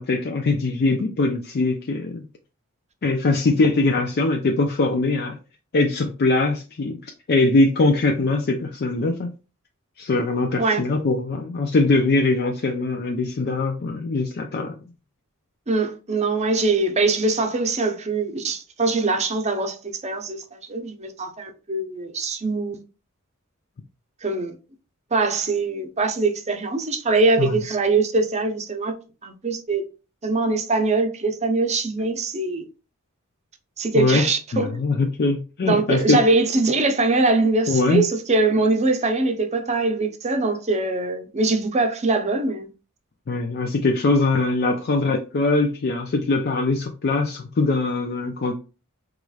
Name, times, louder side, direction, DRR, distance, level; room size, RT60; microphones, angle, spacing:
voice 1, 0.0-2.2 3.0-5.4 5.7-9.3 10.0-14.8 27.4-27.6 33.9-34.2 34.5-36.2 37.7-38.0 43.3-48.6, left 3 dB, 50° left, 0.4 m, -22 dB
voice 2, 15.7-19.8 20.0-22.8 24.2-24.6 25.1-29.0 29.2-29.8 30.2-32.6 33.8-34.8 35.6-42.7, right 3 dB, 30° right, 0.6 m, -22 dB
4.8 x 3.0 x 2.3 m
head